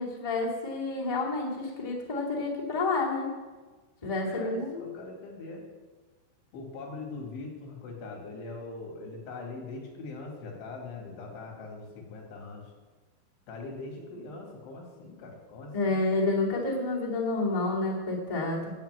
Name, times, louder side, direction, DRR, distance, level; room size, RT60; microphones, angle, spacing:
voice 1, 0.0-3.3 4.0-4.9 15.7-18.7, left 3 dB, 15° left, -5 dB, 1.3 m, -29 dB
voice 2, 4.2-5.6 6.5-12.7 13.5-16.1 18.6-18.7, left 3 dB, 80° left, 0 dB, 4.9 m, -41 dB
10.5 x 8.9 x 8.1 m, 1.3 s
omnidirectional pair, 5.4 m